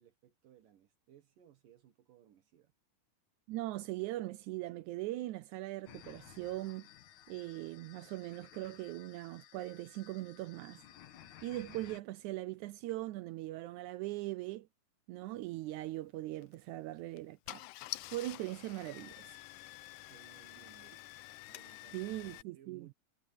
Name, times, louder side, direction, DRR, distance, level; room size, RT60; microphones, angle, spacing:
voice 1, 0.0-2.7 20.1-21.0 21.5-22.9, right 10 dB, 70° right, 3.1 m, -62 dB
voice 2, 3.5-6.9 7.3-10.8 11.4-14.7 15.1-17.6 18.1-19.3 21.9-22.9, right 17 dB, 85° right, 1.7 m, -40 dB
sound 1, 5.9-12.0, left 11 dB, 60° left, 2.6 m, -57 dB
Car / Engine starting, 16.4-16.6 17.2-17.3 17.5-22.4, left 18 dB, 80° left, 2.0 m, -48 dB
omnidirectional pair, 4.1 m